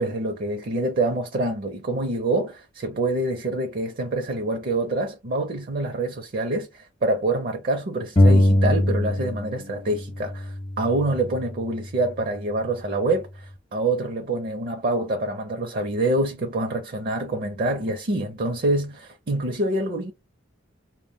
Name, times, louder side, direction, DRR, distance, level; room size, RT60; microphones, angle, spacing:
voice 1, 0.0-20.1, right 2 dB, 50° right, 0.5 m, -26 dB
sound 1, 8.2-9.7 9.9-11.7, left 1 dB, 25° left, 0.4 m, -21 dB
2.2 x 2.1 x 3.3 m
head